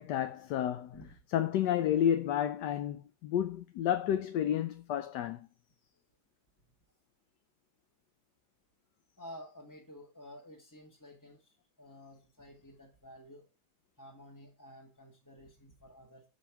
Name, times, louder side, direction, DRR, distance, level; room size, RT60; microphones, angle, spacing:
voice 1, 0.0-1.0 1.3-5.5, left 10 dB, 75° left, 1.2 m, -31 dB
voice 2, 9.2-13.5 14.0-16.2, equal, 10° left, 1.2 m, -52 dB
7.3 x 5.3 x 5.8 m
omnidirectional pair, 1.9 m